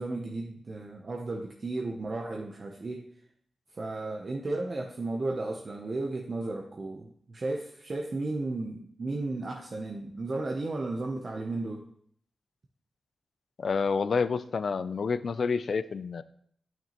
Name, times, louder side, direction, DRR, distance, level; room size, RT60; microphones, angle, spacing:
voice 1, 0.0-3.1 3.7-11.9, right 2 dB, 40° right, 1 dB, 0.6 m, -34 dB
voice 2, 13.6-16.2, left 5 dB, 60° left, 14 dB, 0.3 m, -28 dB
9.4 x 5.9 x 2.9 m, 0.66 s
wide cardioid pair, 155°, 0 cm